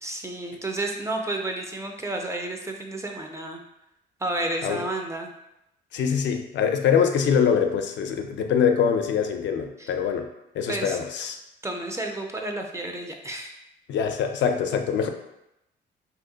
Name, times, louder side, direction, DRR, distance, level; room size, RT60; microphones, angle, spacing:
voice 1, 0.0-3.6 4.2-5.3 9.8-9.9 10.7-11.0 11.6-13.6, right 2 dB, 15° right, 2 dB, 0.4 m, -31 dB
voice 2, 5.9-10.3 10.5-11.4 13.9-15.1, left 7 dB, 65° left, 5 dB, 0.4 m, -23 dB
2.8 x 2.1 x 3.7 m, 0.86 s
cardioid pair, 90°, 20 cm